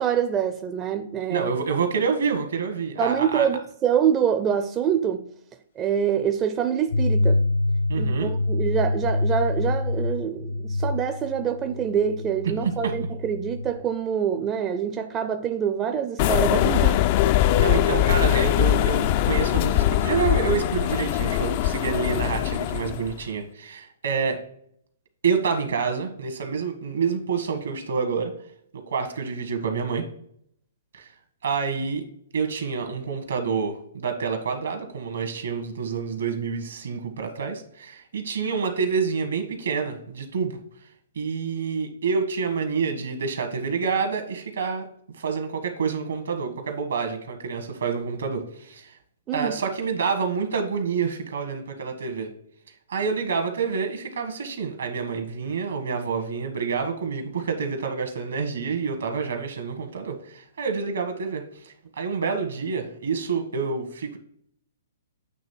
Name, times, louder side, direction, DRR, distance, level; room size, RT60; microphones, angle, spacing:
voice 1, 0.0-1.5 3.0-5.3 5.8-7.4 7.9-17.0 49.3-49.5, right 8 dB, 25° right, 0.5 m, -25 dB
voice 2, 1.3-3.5 7.9-8.3 12.6-12.9 17.5-24.4 25.2-28.3 28.9-30.0 30.9-31.1 31.4-32.0 32.3-40.6 41.1-44.9 45.2-48.9 49.3-52.3 52.9-64.2, right 5 dB, 75° right, 1.5 m, -28 dB
sound 1, 6.9-13.7, left 2 dB, 85° left, 1.4 m, -26 dB
sound 2, 16.2-23.1, left 13 dB, 45° left, 0.3 m, -22 dB
8.3 x 3.1 x 4.4 m
hypercardioid pair, 130°, 0 cm